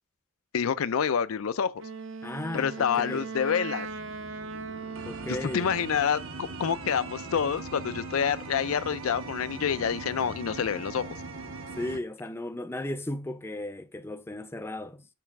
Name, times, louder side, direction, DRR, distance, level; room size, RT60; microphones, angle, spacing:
voice 1, 0.5-1.7 2.5-3.9 5.3-11.1, left 7 dB, 85° left, 0.5 m, -27 dB
Wind instrument woodwind instrument, 1.8-6.0, right 4 dB, 65° right, 0.6 m, -39 dB
voice 2, 2.2-3.2 5.1-5.7 11.8-15.1, left 1 dB, 10° left, 0.5 m, -35 dB
sound 1, 3.8-12.0, right 3 dB, 80° right, 1.1 m, -40 dB
6.7 x 3.4 x 5.9 m
head